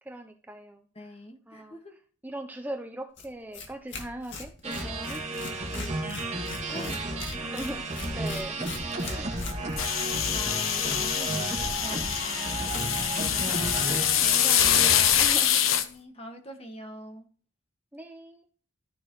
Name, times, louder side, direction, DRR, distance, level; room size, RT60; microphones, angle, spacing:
voice 1, 0.0-1.2 1.5-5.4 5.7-6.4 6.8-9.3 13.3-15.6 17.9-18.5, right 1 dB, 10° right, 5 dB, 0.6 m, -41 dB
voice 2, 1.0-2.0 6.7-7.5 10.0-12.6 13.9-14.2 15.4-17.2, equal, 30° left, 5 dB, 1.7 m, -43 dB
Tearing, 3.2-3.3 3.5-3.7 3.9-15.3, left 3 dB, 65° left, 2.1 m, -40 dB
sound 1, 4.6-15.0, right 2 dB, 35° right, 2.2 m, -33 dB
sound 2, 9.8-15.8, left 10 dB, 85° left, 0.9 m, -25 dB
13.5 x 6.1 x 3.1 m, 0.41 s
head